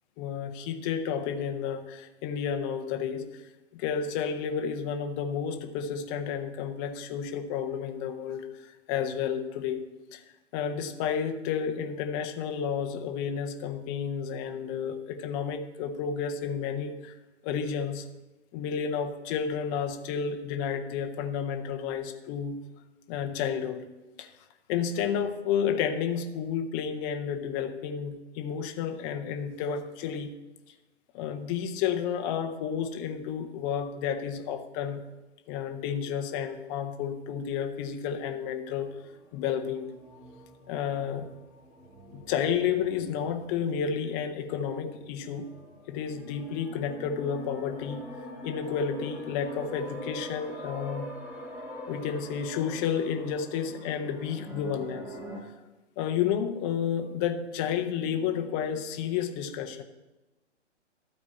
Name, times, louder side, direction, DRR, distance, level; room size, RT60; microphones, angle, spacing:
voice 1, 0.2-3.4 3.7-9.8 10.1-10.2 10.5-17.1 17.4-18.1 18.5-22.6 23.1-23.9 24.2-24.3 24.7-30.3 31.1-35.0 35.5-38.9 39.3-39.9 40.7-41.3 42.1-45.5 45.9-48.0 48.4-51.1 51.9-55.2 56.0-59.8, left 7 dB, 15° left, 5 dB, 0.5 m, -31 dB
sound 1, 38.8-55.4, equal, 5° right, 1.1 m, -44 dB
12.5 x 4.5 x 8.4 m, 1.1 s
hypercardioid pair, 130°, 36 cm